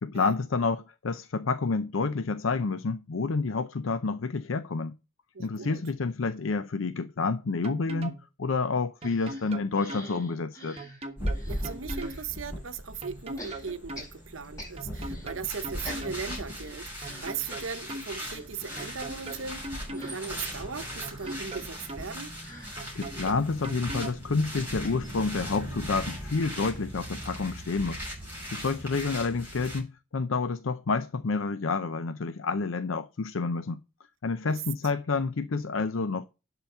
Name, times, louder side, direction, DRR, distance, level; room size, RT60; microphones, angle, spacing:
voice 1, 0.0-5.0 5.4-10.8 22.9-28.0 28.5-33.8 34.2-36.2, left 4 dB, 75° left, 0.6 m, -29 dB
voice 2, 5.3-5.8 11.5-22.3 28.7-28.8 34.4-34.5, right 5 dB, 75° right, 0.9 m, -38 dB
sound 1, 7.6-8.2 9.0-10.1 10.8-12.2 13.0-14.1 14.8-16.2 17.0-18.1 18.8-20.2 21.0-22.1 22.8-24.2, right 2 dB, 30° right, 1.3 m, -40 dB
sound 2, 9.0-12.3 13.4-15.4 15.6-27.6 27.9-28.0 28.2-28.4, equal, 15° left, 4.2 m, -49 dB
sound 3, 11.2-29.8, equal, 10° right, 6.5 m, -38 dB
11.5 x 4.0 x 6.6 m
head